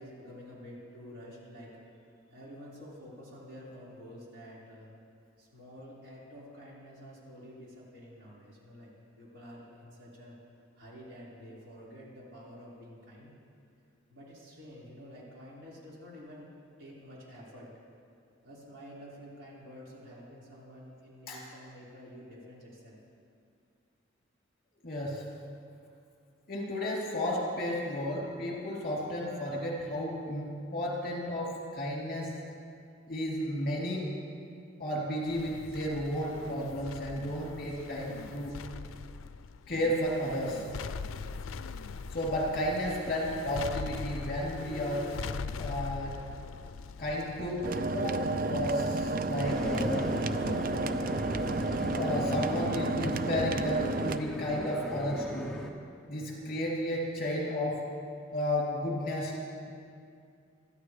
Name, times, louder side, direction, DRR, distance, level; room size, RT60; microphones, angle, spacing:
voice 1, 0.0-1.8 2.3-4.9 5.4-8.9 9.2-10.4 10.8-13.3 14.1-16.5 16.8-17.7 18.4-23.0, equal, 70° right, -7 dB, 4.7 m, -49 dB
voice 2, 24.8-25.4 26.5-32.5 33.1-34.2 34.8-38.7 39.7-40.7 42.1-45.3 45.5-46.3 47.0-50.2 51.9-55.6 56.1-58.0 58.3-59.7, equal, 45° left, -4 dB, 3.3 m, -33 dB
sound 1, 35.3-50.7 51.1-51.2, left 4 dB, 85° left, 0.5 m, -42 dB
sound 2, 47.6-54.2, right 2 dB, 45° right, 0.4 m, -31 dB
sound 3, 49.4-55.7, equal, 5° left, 0.9 m, -36 dB
23.5 x 14.0 x 3.3 m, 2.4 s
head